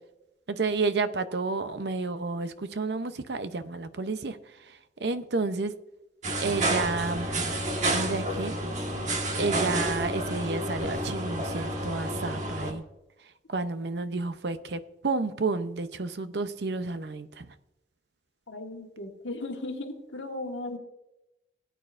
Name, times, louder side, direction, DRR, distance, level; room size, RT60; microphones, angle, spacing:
voice 1, 0.5-4.4 5.0-5.7 6.4-7.3 7.9-8.6 9.3-12.8 13.5-17.5, right 3 dB, 65° right, 11 dB, 0.7 m, -30 dB
sound 1, 6.2-12.7, right 1 dB, 40° right, 1.5 m, -30 dB
voice 2, 18.5-20.8, left 2 dB, 85° left, 3 dB, 1.6 m, -36 dB
18.0 x 9.2 x 2.5 m, 0.93 s
head